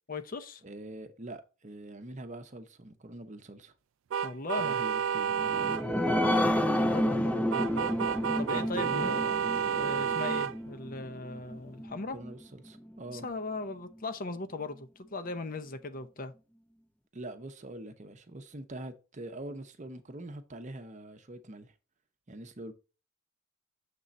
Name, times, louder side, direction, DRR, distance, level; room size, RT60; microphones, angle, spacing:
voice 1, 0.1-0.6 4.2-4.8 6.7-7.8 8.4-9.3 9.6-12.2 13.1-16.3, left 3 dB, 40° left, 0.7 m, -38 dB
voice 2, 0.6-3.7 4.6-5.7 8.5-9.2 11.9-13.3 17.1-21.7 22.3-22.7, right 1 dB, 35° right, 0.8 m, -44 dB
sound 1, 4.1-5.8 7.5-10.5, right 7 dB, 65° right, 0.3 m, -30 dB
sound 2, 5.2-12.3 12.8-12.9 13.2-13.3, equal, 5° left, 0.6 m, -30 dB
6.8 x 3.8 x 4.1 m
head